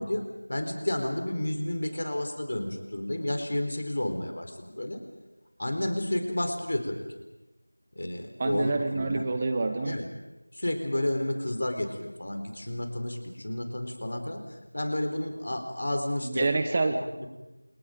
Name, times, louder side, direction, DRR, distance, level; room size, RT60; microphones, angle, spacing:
voice 1, 0.0-5.0 5.6-7.0 8.0-9.3 9.8-10.1 10.5-16.6 17.2-17.3, left 1 dB, 45° left, 6 dB, 4.1 m, -31 dB
voice 2, 8.4-10.0 16.2-17.2, right 3 dB, 15° right, 7 dB, 0.8 m, -27 dB
29.5 x 29.0 x 5.2 m, 1.0 s
figure-of-eight pair, 175°, 0 cm